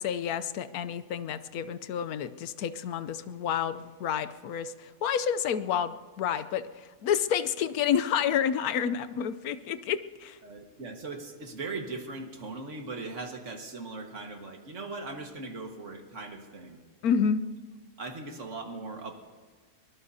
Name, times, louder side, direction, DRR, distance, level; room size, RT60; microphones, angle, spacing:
voice 1, 0.0-6.7 7.0-10.4 17.0-17.5, left 8 dB, 75° left, 13 dB, 1.2 m, -29 dB
voice 2, 10.4-16.8 18.0-19.1, right 3 dB, 55° right, 3 dB, 1.9 m, -39 dB
23.5 x 20.0 x 2.8 m, 1.5 s
omnidirectional pair, 1.6 m